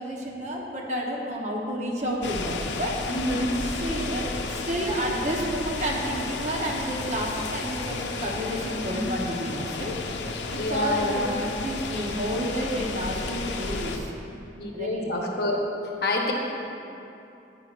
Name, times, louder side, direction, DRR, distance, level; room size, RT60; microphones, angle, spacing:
voice 1, 0.0-3.0 3.6-14.1 14.7-15.1, equal, 40° right, -1 dB, 1.0 m, -31 dB
sound 1, 2.2-14.0, left 3 dB, 85° left, 0.6 m, -33 dB
voice 2, 3.1-3.5 8.9-9.1 10.5-11.4 14.6-15.6 16.0-16.3, left 1 dB, 60° left, -1 dB, 1.0 m, -27 dB
9.5 x 9.3 x 2.5 m, 2.7 s
head